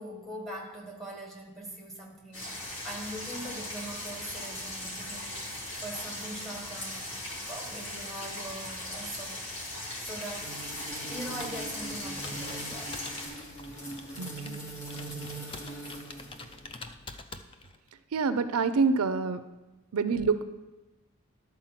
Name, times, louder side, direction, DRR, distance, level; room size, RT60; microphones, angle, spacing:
voice 1, 0.0-5.4 5.8-9.5 10.0-10.5 11.1-12.9 15.6-15.8, right 1 dB, ahead, -1 dB, 1.4 m, -42 dB
sound 1, 2.3-13.3, left 1 dB, 55° left, 2.5 m, -39 dB
sound 2, 10.4-16.8, right 1 dB, 75° left, 2.2 m, -41 dB
Computer keyboard, 11.0-17.9, left 3 dB, 25° left, 0.3 m, -47 dB
voice 2, 14.2-14.6 18.1-19.4 19.9-20.4, right 4 dB, 80° right, 11 dB, 0.5 m, -27 dB
11.0 x 4.4 x 5.8 m, 1.1 s
head